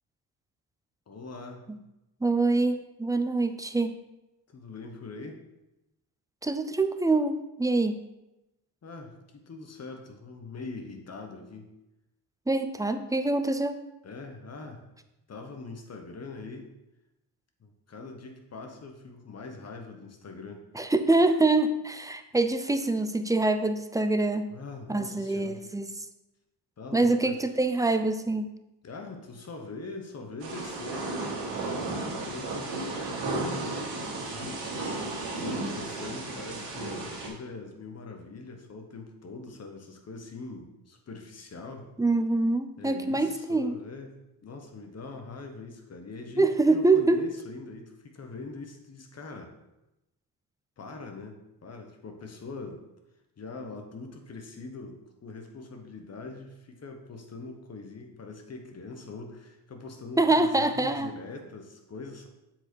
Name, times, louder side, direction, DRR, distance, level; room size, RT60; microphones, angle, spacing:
voice 1, 1.1-1.7 4.5-5.4 8.8-11.7 14.0-14.9 15.3-16.7 17.6-20.6 24.5-25.6 26.8-27.4 28.8-34.9 35.3-41.9 42.8-44.1 44.4-49.6 50.8-52.8 53.4-62.3, left 3 dB, 35° left, 4 dB, 1.2 m, -42 dB
voice 2, 2.2-4.0 6.4-7.9 12.5-13.8 20.7-24.5 24.9-25.9 26.9-28.5 42.0-43.7 46.4-47.2 60.2-61.1, right 2 dB, 10° right, 8 dB, 0.4 m, -25 dB
Thunder / Rain, 30.4-37.3, right 2 dB, 85° right, 2.6 m, -34 dB
7.6 x 4.9 x 4.5 m, 0.94 s
cardioid pair, 115°, 41 cm